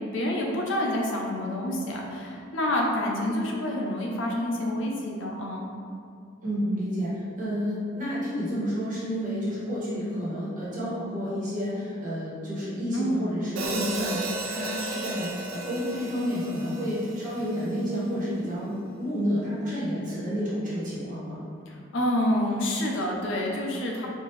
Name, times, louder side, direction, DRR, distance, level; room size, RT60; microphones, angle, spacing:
voice 1, 0.1-5.7 12.9-13.2 21.7-24.1, left 1 dB, 70° left, -1 dB, 0.7 m, -28 dB
voice 2, 6.4-21.4, equal, 40° right, -9 dB, 1.4 m, -30 dB
Hi-hat, 13.6-17.7, right 2 dB, 85° right, 0.5 m, -34 dB
4.5 x 2.7 x 3.2 m, 2.6 s
head